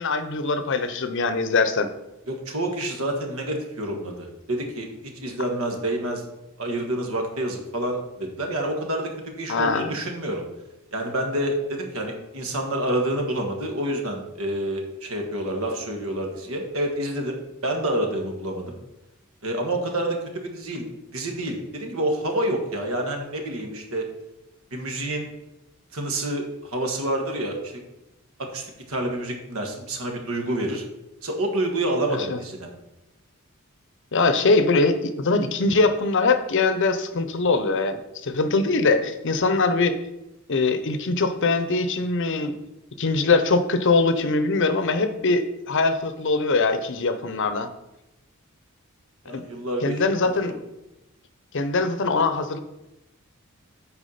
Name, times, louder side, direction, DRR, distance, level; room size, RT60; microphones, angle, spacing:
voice 1, 0.0-1.9 9.5-10.0 32.1-32.4 34.1-40.0 40.5-42.6 43.0-47.7 49.3-49.4 49.8-50.6 51.5-52.6, left 3 dB, 60° left, 10 dB, 0.7 m, -22 dB
voice 2, 2.3-6.2 6.6-10.4 10.9-17.4 17.6-18.8 19.4-20.8 21.1-24.1 24.7-25.3 25.9-27.7 28.4-30.8 31.2-32.7 49.2-50.3, right 1 dB, 70° right, 3 dB, 1.6 m, -28 dB
8.4 x 4.7 x 5.6 m, 0.93 s
head